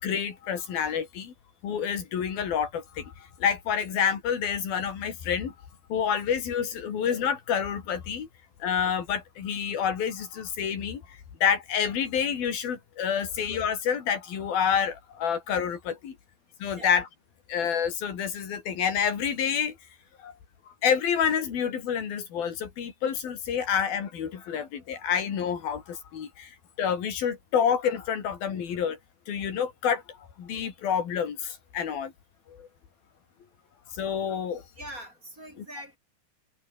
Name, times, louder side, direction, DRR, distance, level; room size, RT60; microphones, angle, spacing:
voice 1, 0.0-1.3 1.6-3.1 3.4-5.5 5.9-8.3 8.6-16.2 16.6-17.1 17.5-19.8 20.2-20.3 20.8-29.0 29.3-32.1 32.5-32.7 33.9-34.6 35.6-35.7, left 8 dB, 65° left, 4.9 m, -28 dB
voice 2, 34.8-36.0, right 1 dB, 20° right, 7.7 m, -42 dB
omnidirectional pair, 4.6 m